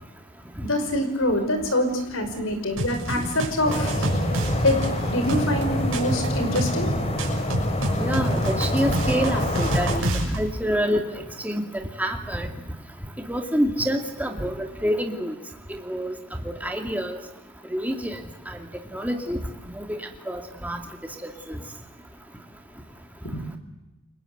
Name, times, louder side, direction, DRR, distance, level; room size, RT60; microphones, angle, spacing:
voice 1, 0.6-4.0 4.6-4.8 5.1-6.9, left 1 dB, 65° left, 7 dB, 5.6 m, -25 dB
sound 1, 2.8-10.4, right 1 dB, 65° right, 6.9 m, -29 dB
sound 2, 3.6-10.0, left 1 dB, 30° left, 3.5 m, -26 dB
voice 2, 8.0-11.1 11.4-12.5 13.3-15.3 15.8-16.1 16.6-17.2 17.7-18.2 18.5-18.6 18.9-19.4 19.8-20.0 20.3-20.8 21.5-21.6, equal, 5° right, 4 dB, 2.3 m, -27 dB
29.5 x 23.5 x 8.0 m, 1.0 s
head